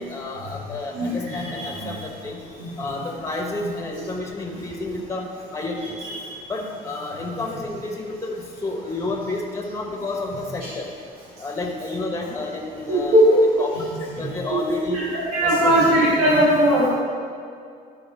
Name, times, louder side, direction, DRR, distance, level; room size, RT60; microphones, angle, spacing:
voice 1, 0.0-2.4 2.8-6.0 6.5-10.9 11.4-13.2 13.6-13.7 14.2-15.0 15.4-16.0 16.7-16.8, left 2 dB, 15° left, 1 dB, 1.3 m, -30 dB
voice 2, 0.9-2.0 2.6-2.7 3.6-3.7 5.9-6.3 7.4-7.5 10.6-10.7 12.9-13.9 14.1-14.6 14.9-16.9, right 1 dB, 90° right, -7 dB, 1.6 m, -20 dB
12.5 x 4.2 x 4.1 m, 2.3 s
cardioid pair, 110°, 17 cm